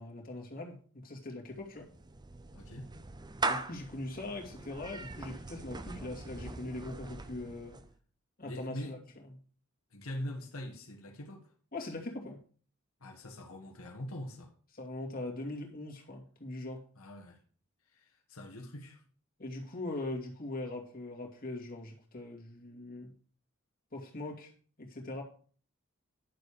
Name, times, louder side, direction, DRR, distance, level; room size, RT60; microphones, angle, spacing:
voice 1, 0.0-1.9 3.5-7.8 8.4-9.0 11.7-12.4 14.7-16.8 19.4-23.1 23.9-24.5 24.8-25.2, left 2 dB, 45° left, 2.6 m, -41 dB
Clapping / Meow, 1.5-8.0, right 3 dB, 20° right, 0.6 m, -40 dB
voice 2, 2.5-2.9 8.4-8.9 9.9-11.5 13.0-14.5 16.9-17.4 17.9-19.0, left 1 dB, 85° left, 1.7 m, -43 dB
11.0 x 7.0 x 5.0 m
head